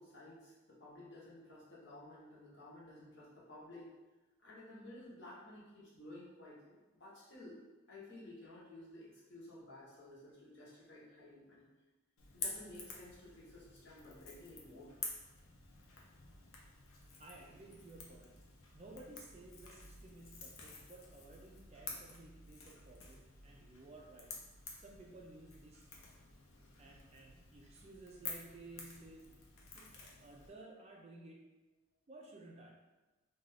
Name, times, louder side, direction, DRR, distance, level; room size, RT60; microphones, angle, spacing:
voice 1, 0.0-4.0 4.4-7.6 7.9-11.7 12.3-14.9, left 1 dB, 55° left, -6 dB, 0.9 m, -54 dB
Crackle / Crack, 12.2-30.5, left 4 dB, 80° left, 0.5 m, -50 dB
voice 2, 17.2-24.3 24.7-25.9 26.8-29.4 29.7-31.6 32.1-32.9, right 2 dB, 30° right, -1 dB, 0.3 m, -56 dB
2.4 x 2.3 x 3.3 m, 1.1 s
head